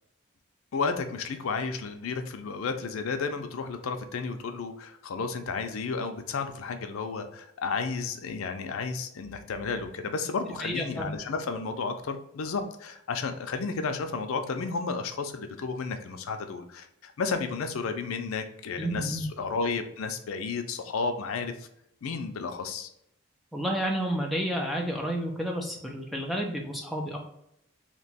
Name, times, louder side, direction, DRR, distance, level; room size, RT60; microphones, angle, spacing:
voice 1, 0.7-21.7 22.0-22.9, left 4 dB, 90° left, 7 dB, 0.4 m, -32 dB
voice 2, 10.6-11.1 18.8-19.3 23.5-27.2, equal, ahead, 0 dB, 0.4 m, -30 dB
2.9 x 2.2 x 4.0 m, 0.76 s
head